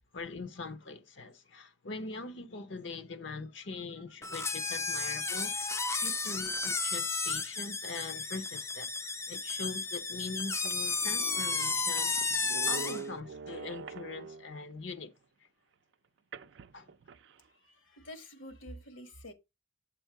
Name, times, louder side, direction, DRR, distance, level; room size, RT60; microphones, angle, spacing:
voice 1, 0.1-15.1 16.7-16.9, left 3 dB, 70° left, 0.7 m, -42 dB
sound 1, 4.2-13.0, left 4 dB, 15° left, 0.4 m, -33 dB
sound 2, 9.6-9.7 10.3-10.4 10.6-14.6 16.3-17.4, right 4 dB, 65° right, 0.4 m, -45 dB
voice 2, 17.5-19.3, equal, 85° left, 1.5 m, -48 dB
6.9 x 3.5 x 4.7 m
head